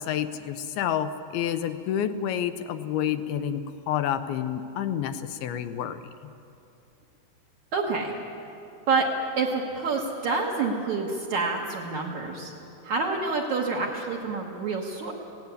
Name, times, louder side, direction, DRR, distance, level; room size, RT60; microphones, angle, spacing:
voice 1, 0.0-6.0, left 9 dB, 80° left, 11 dB, 2.6 m, -29 dB
voice 2, 7.7-8.1 8.9-9.1 9.4-12.5 12.8-15.1, right 4 dB, 55° right, -3 dB, 2.4 m, -27 dB
17.0 x 17.0 x 9.7 m, 2.7 s
omnidirectional pair, 4.6 m